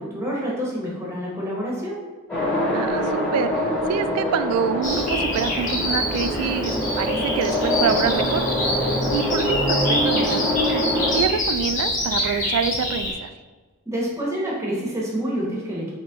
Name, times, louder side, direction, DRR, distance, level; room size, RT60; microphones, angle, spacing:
voice 1, 0.0-2.0 13.8-15.9, equal, 15° right, -4 dB, 1.0 m, -27 dB
sound 1, 2.3-11.2, equal, 10° left, 1.5 m, -24 dB
voice 2, 2.7-3.6 3.9-8.5 9.1-10.6 11.1-13.3, right 6 dB, 85° right, 11 dB, 0.3 m, -26 dB
Bird vocalization bird call bird song, 4.8-13.1, left 1 dB, 35° left, 1.0 m, -26 dB
4.1 x 3.0 x 3.5 m, 1.4 s
head